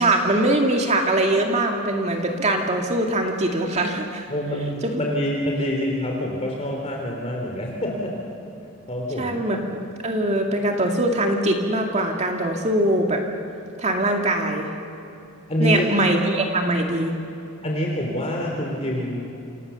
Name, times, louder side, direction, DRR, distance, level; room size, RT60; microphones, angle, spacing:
voice 1, 0.0-4.3 4.8-4.9 9.2-13.2 13.8-14.7 15.6-17.1, right 1 dB, 30° right, 2 dB, 2.2 m, -22 dB
voice 2, 4.3-8.2 8.9-9.4 15.5-15.9 17.6-19.3, equal, 30° left, -1 dB, 3.4 m, -26 dB
28.0 x 27.5 x 7.0 m, 2.6 s
head